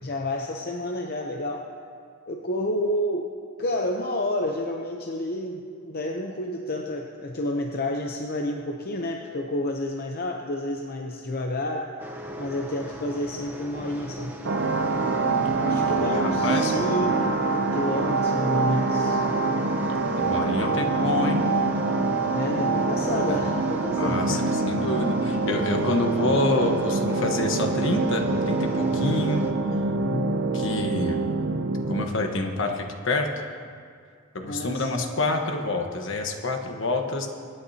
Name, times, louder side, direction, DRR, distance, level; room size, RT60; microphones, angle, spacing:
voice 1, 0.0-1.7 2.3-3.3 3.6-11.9 12.4-14.4 15.6-19.2 22.3-24.7 30.0-30.4 34.4-35.0, left 1 dB, 45° left, 2 dB, 0.7 m, -30 dB
sound 1, 12.0-29.5, equal, 10° right, 0.9 m, -39 dB
sound 2, 14.4-32.1, right 3 dB, 60° right, 0.7 m, -25 dB
voice 2, 15.6-16.7 20.1-21.4 23.3-23.4 24.0-29.4 30.5-31.2 31.9-33.3 34.3-37.3, left 2 dB, 65° left, 3 dB, 1.2 m, -27 dB
25.0 x 9.9 x 2.8 m, 2.2 s
head